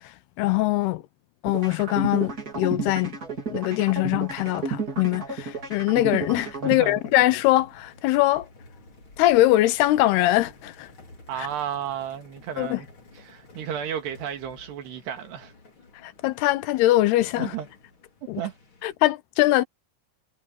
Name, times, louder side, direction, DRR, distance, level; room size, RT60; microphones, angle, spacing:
voice 1, 0.4-1.0 1.4-3.1 3.5-8.5 9.2-10.9 11.4-11.5 12.6-12.8 16.0-17.5 18.3-18.4 18.8-19.6, left 16 dB, 80° left, 2.9 m, -22 dB
sound 1, 1.5-7.5, right 4 dB, 25° right, 3.1 m, -32 dB
sound 2, 1.9-19.0, left 2 dB, 30° left, 4.4 m, -52 dB
voice 2, 6.6-7.0 11.3-12.9 13.2-15.5 17.4-17.7 18.4-18.6, right 9 dB, 85° right, 4.5 m, -33 dB
omnidirectional pair, 4.6 m